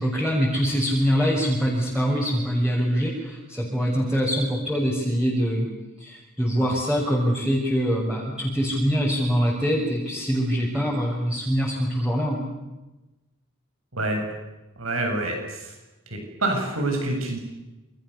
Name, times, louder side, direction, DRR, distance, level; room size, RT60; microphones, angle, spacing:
voice 1, 0.0-5.7 6.0-12.4, equal, 5° right, -4 dB, 6.5 m, -24 dB
voice 2, 13.9-14.2 14.8-15.7 16.1-17.4, right 2 dB, 90° right, 3 dB, 7.9 m, -27 dB
29.5 x 27.0 x 7.0 m, 1.1 s
head